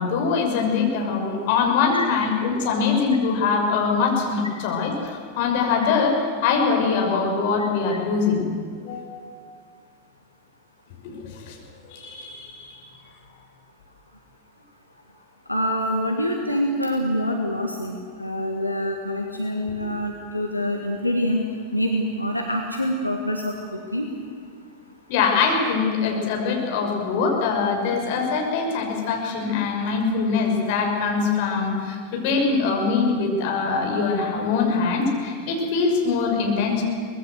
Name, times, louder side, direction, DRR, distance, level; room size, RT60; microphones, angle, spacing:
voice 1, 0.0-8.4 8.8-9.3 11.0-11.6 11.9-12.8 19.7-19.9 25.1-36.8, left 5 dB, 50° left, 1 dB, 5.8 m, -23 dB
voice 2, 15.5-21.4 21.7-23.5 23.9-24.1, equal, 85° left, 1 dB, 1.9 m, -25 dB
24.0 x 20.0 x 8.0 m, 2.1 s
figure-of-eight pair, 90°, 0 cm